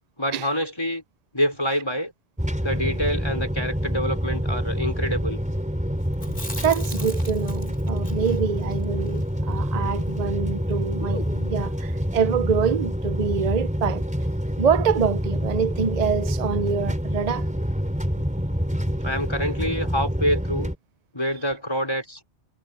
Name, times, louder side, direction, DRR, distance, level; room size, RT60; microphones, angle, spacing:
voice 1, 0.2-1.0 1.3-2.1 2.6-5.4 19.0-20.7 21.1-22.2, equal, 25° left, 5.2 m, -26 dB
sound 1, 2.4-20.8, equal, 5° right, 4.0 m, -27 dB
Chewing mastication, 6.1-10.3 10.6-10.7 11.0-11.7, left 2 dB, 50° left, 6.2 m, -39 dB
voice 2, 6.6-14.1 14.6-17.5, right 6 dB, 40° right, 0.7 m, -25 dB
omnidirectional pair, 1.2 m